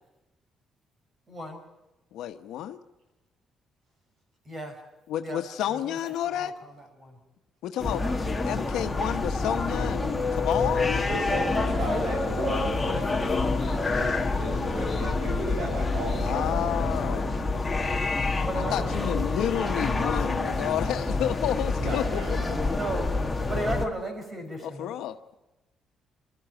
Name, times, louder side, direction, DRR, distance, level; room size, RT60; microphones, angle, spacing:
voice 1, 1.3-1.6 4.4-4.7 5.2-5.4 5.7-6.7 7.0-7.2 8.0-8.2 11.9-12.0 12.8-13.9 18.4-20.9 22.7-23.1 23.5-24.9, right 1 dB, 25° right, 5 dB, 5.1 m, -36 dB
voice 2, 2.1-2.8 5.1-6.5 7.6-8.0 8.4-11.1 16.2-17.3 18.6-22.2 24.6-25.3, left 11 dB, 85° left, 8 dB, 1.1 m, -30 dB
sound 1, 7.8-23.9, left 3 dB, 15° left, 1.6 m, -28 dB
sound 2, 10.8-17.2, left 5 dB, 40° left, 1.2 m, -37 dB
voice 3, 11.1-12.8 13.9-17.6 21.8-22.8, right 1 dB, 75° right, -4 dB, 7.2 m, -35 dB
27.0 x 13.0 x 8.9 m, 1.0 s
cardioid pair, 145°, 0 cm